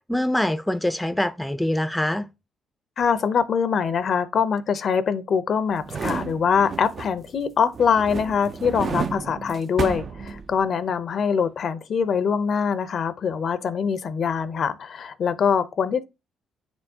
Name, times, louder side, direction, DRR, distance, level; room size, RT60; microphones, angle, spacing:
voice 1, 0.0-2.3, left 1 dB, 5° left, 0.5 m, -24 dB
voice 2, 3.0-16.0, left 6 dB, 55° left, 0.6 m, -23 dB
sound 1, 5.7-7.4 7.7-10.8 11.2-11.3, right 5 dB, 45° right, 0.4 m, -31 dB
9.2 x 4.4 x 2.8 m
cardioid pair, 90°, 0 cm